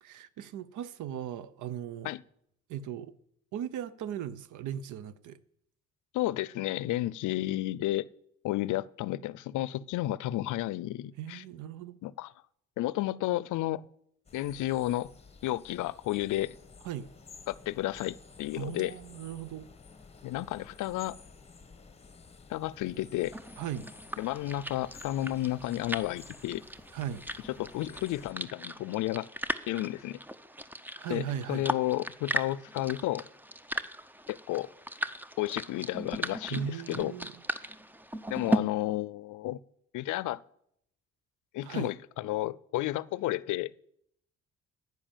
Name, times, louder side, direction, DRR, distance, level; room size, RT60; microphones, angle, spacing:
voice 1, 0.0-2.1 2.7-3.1 3.5-5.4 11.2-12.0 16.8-17.1 18.5-19.7 23.6-23.9 26.9-27.2 31.0-31.8 36.5-37.4 41.6-41.9, right 10 dB, 80° right, 0.8 m, -38 dB
voice 2, 6.1-8.1 8.4-11.4 12.0-12.3 12.8-13.8 14.3-15.1 15.4-16.5 17.5-18.9 20.2-21.1 22.5-23.4 24.2-26.6 27.6-29.3 29.7-30.2 31.1-33.2 34.3-34.7 35.4-37.1 38.3-39.6 39.9-40.4 41.5-43.7, left 15 dB, 80° left, 0.5 m, -32 dB
sound 1, 14.2-28.3, left 4 dB, 20° left, 1.3 m, -53 dB
sound 2, 23.3-38.6, right 1 dB, 5° right, 0.6 m, -37 dB
10.0 x 9.5 x 7.3 m
cardioid pair, 90°, 30 cm